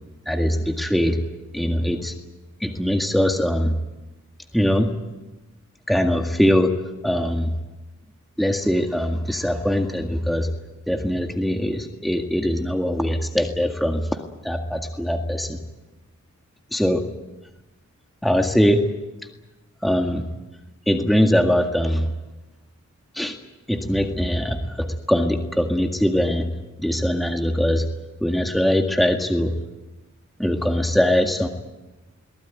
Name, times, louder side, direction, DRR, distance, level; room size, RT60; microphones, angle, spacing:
voice 1, 0.2-1.2 1.5-2.1 2.6-3.7 4.5-5.0 5.9-6.7 7.0-7.5 8.4-10.5 10.9-14.0 14.4-15.6 16.7-17.0 18.2-18.8 19.8-20.2 20.9-22.1 23.1-23.4 23.7-26.4 26.8-27.8 28.2-29.5 30.4-31.5, equal, ahead, 4 dB, 1.8 m, -21 dB
22.5 x 19.5 x 9.4 m, 1.1 s
wide cardioid pair, 95°, 31 cm